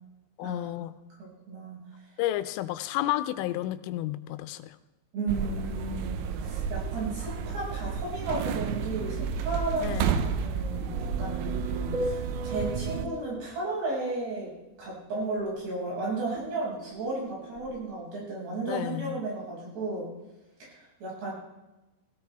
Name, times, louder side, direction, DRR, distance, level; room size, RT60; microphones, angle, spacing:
voice 1, 0.4-0.9 2.2-4.7 9.8-10.3 18.7-19.2, left 14 dB, 85° left, 11 dB, 3.2 m, -31 dB
voice 2, 1.2-1.8 5.1-14.5 14.8-20.1 20.6-21.3, right 2 dB, 55° right, -5 dB, 8.0 m, -34 dB
sound 1, 5.3-13.1, right 6 dB, 85° right, 3.4 m, -31 dB
sound 2, 11.9-14.1 16.3-17.9, equal, 30° right, 3.1 m, -38 dB
17.5 x 17.0 x 3.4 m, 1.0 s
omnidirectional pair, 5.8 m